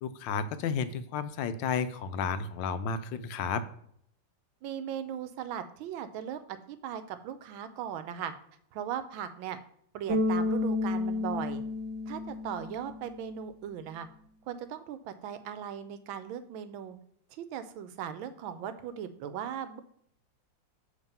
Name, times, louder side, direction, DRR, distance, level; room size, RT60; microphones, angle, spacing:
voice 1, 0.0-3.6, left 6 dB, 75° left, 11 dB, 1.3 m, -32 dB
voice 2, 4.6-8.3 8.7-9.6 9.9-11.6 12.1-14.1 14.5-17.0 17.3-19.8, right 9 dB, 90° right, 11 dB, 1.5 m, -38 dB
Bass guitar, 10.1-13.2, left 2 dB, 45° right, 1.7 m, -31 dB
7.3 x 3.6 x 5.4 m, 0.68 s
omnidirectional pair, 2.1 m